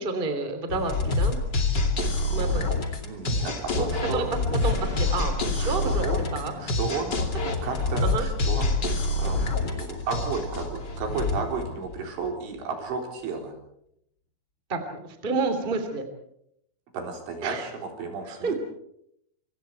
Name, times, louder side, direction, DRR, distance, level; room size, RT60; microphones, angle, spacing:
voice 1, 0.0-1.4 2.3-2.8 3.7-4.2 4.6-6.0 6.3-6.5 6.9-7.0 8.0-8.3 14.7-16.0 17.4-17.7 18.3-18.5, right 3 dB, 15° right, 7 dB, 2.2 m, -30 dB
sound 1, 0.7-12.4, left 2 dB, 30° left, 2.1 m, -27 dB
voice 2, 3.0-4.2 5.6-6.3 6.6-7.2 7.6-13.6 16.9-18.6, right 4 dB, 75° right, 3 dB, 6.2 m, -33 dB
27.0 x 25.0 x 4.7 m, 0.74 s
omnidirectional pair, 5.5 m